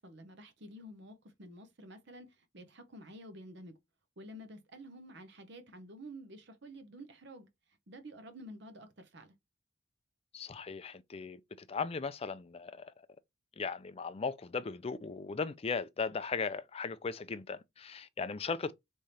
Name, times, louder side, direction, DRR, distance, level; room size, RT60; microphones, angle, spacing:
voice 1, 0.0-3.8 4.2-7.5 7.9-9.3, equal, 60° right, 0.9 m, -50 dB
voice 2, 10.3-12.9 13.6-18.7, left 5 dB, 30° left, 0.4 m, -37 dB
3.7 x 3.3 x 4.2 m
head